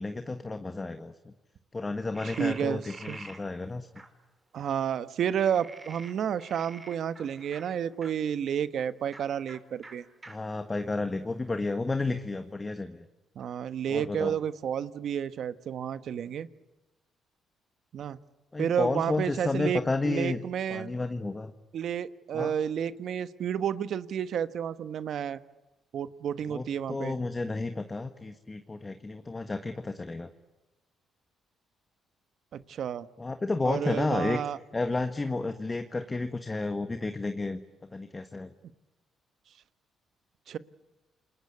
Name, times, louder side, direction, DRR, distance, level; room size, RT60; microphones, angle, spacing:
voice 1, 0.0-1.3 1.7-3.9 10.3-13.0 13.9-14.3 18.5-20.4 20.7-21.5 22.3-22.5 26.5-30.3 33.2-34.4 34.7-37.6 37.9-38.5, left 3 dB, 25° left, 8 dB, 1.5 m, -31 dB
Frog, 2.1-3.4 4.0-4.1 5.4-8.1 9.0-9.2 9.5-9.6 9.8-9.9 10.2-10.3 10.9-11.7, right 3 dB, 25° right, 5.4 m, -47 dB
voice 2, 2.2-3.2 4.5-10.0 13.3-16.5 17.9-18.2 18.6-20.9 21.7-25.4 25.9-27.2 32.5-33.1 33.6-34.6 40.5-40.6, right 8 dB, 65° right, 13 dB, 1.2 m, -31 dB
28.5 x 21.5 x 9.8 m, 1.1 s
cardioid pair, 90°, 0 cm